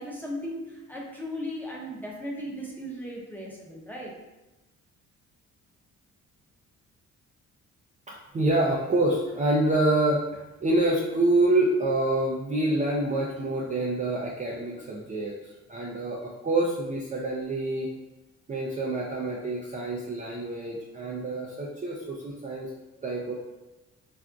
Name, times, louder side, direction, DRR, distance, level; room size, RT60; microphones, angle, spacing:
voice 1, 0.0-4.1, equal, 5° left, -3 dB, 0.7 m, -36 dB
voice 2, 8.1-17.9 18.5-22.7 23.0-23.3, right 2 dB, 25° right, -4 dB, 0.4 m, -27 dB
3.4 x 2.5 x 2.3 m, 1.1 s
cardioid pair, 90°, 30 cm